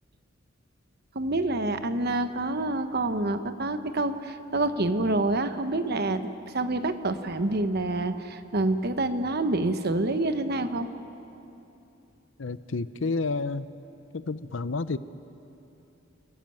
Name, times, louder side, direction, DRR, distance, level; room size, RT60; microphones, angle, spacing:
voice 1, 1.1-10.9, right 2 dB, 55° right, 9 dB, 1.2 m, -27 dB
voice 2, 12.4-13.7 14.1-15.0, left 3 dB, 70° left, 14 dB, 0.7 m, -30 dB
29.5 x 15.0 x 9.1 m, 2.9 s
head